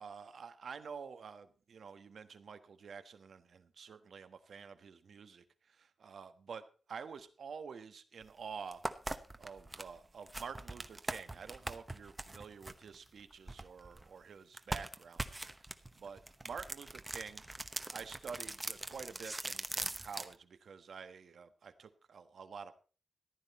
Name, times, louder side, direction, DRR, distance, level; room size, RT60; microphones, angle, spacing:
voice 1, 0.0-8.8 9.4-15.7 15.9-17.4 17.9-22.7, right 6 dB, 75° right, 10 dB, 1.3 m, -49 dB
sound 1, 8.2-8.3 8.7-14.1 14.5-20.3, right 2 dB, 15° right, 0.9 m, -42 dB
14.5 x 11.5 x 4.3 m, 0.37 s
wide cardioid pair, 145°, 0 cm